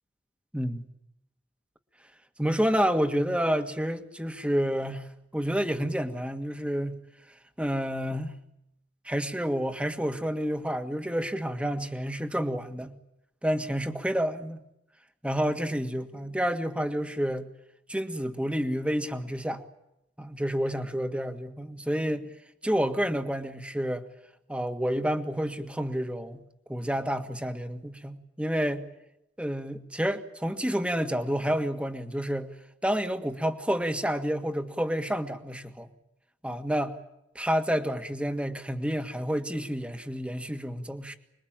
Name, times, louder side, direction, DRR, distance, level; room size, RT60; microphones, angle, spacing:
voice 1, 0.5-0.8 2.4-5.1 5.3-7.0 7.6-8.4 9.0-12.9 13.4-14.6 15.2-17.5 17.9-19.6 20.2-22.3 22.6-24.1 24.5-26.4 26.7-28.8 29.4-32.5 32.8-35.9 36.4-36.9 37.3-41.2, equal, 5° right, 8 dB, 1.7 m, -29 dB
26.0 x 22.0 x 9.0 m, 0.84 s
head